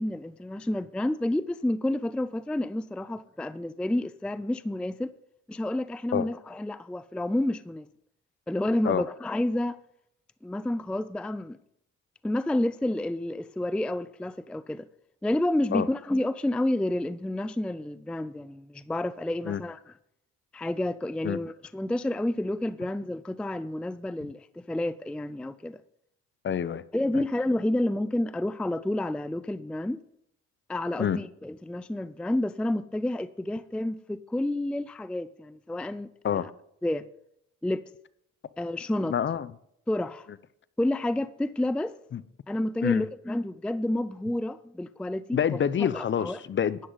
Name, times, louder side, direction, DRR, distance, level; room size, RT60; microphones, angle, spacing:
voice 1, 0.0-5.1 5.5-7.9 8.5-9.8 10.4-11.6 12.2-14.9 15.2-19.9 20.5-25.8 26.9-30.0 30.7-36.5 36.8-37.1 37.6-37.8 38.6-39.1 39.9-40.3 40.8-41.9 42.5-46.4, left 1 dB, 5° left, 0.3 m, -30 dB
voice 2, 26.4-26.8 31.0-31.2 36.2-36.5 39.1-39.5 42.1-42.2 42.8-43.0 45.3-46.9, left 8 dB, 40° left, 0.6 m, -27 dB
13.0 x 9.4 x 4.0 m
cardioid pair, 90°, 30 cm